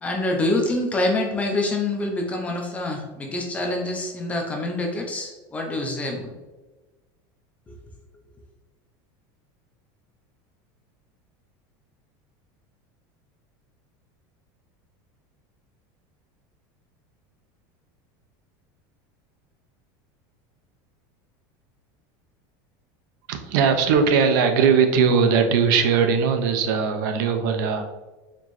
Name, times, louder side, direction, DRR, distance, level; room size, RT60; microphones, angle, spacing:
voice 1, 0.0-6.3 7.7-7.8, left 2 dB, 10° left, 2 dB, 0.4 m, -26 dB
voice 2, 23.3-28.0, right 6 dB, 65° right, 6 dB, 0.5 m, -20 dB
4.3 x 2.9 x 3.0 m, 1.2 s
cardioid pair, 175°, 11 cm